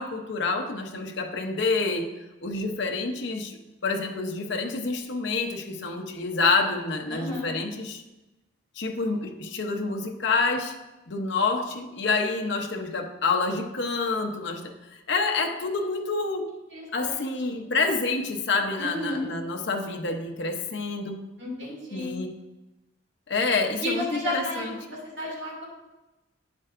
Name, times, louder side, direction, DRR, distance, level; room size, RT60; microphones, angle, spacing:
voice 1, 0.0-2.1 2.4-3.6 3.8-8.0 8.8-10.7 11.1-14.7 15.1-16.5 16.9-21.2 21.9-22.3 23.3-24.7, left 3 dB, 65° left, 3 dB, 0.8 m, -27 dB
voice 2, 7.1-7.6 16.7-17.6 18.8-19.2 21.4-22.2 23.8-24.9 25.2-25.6, left 1 dB, 60° right, -3 dB, 2.3 m, -32 dB
9.0 x 7.1 x 2.5 m, 1.0 s
head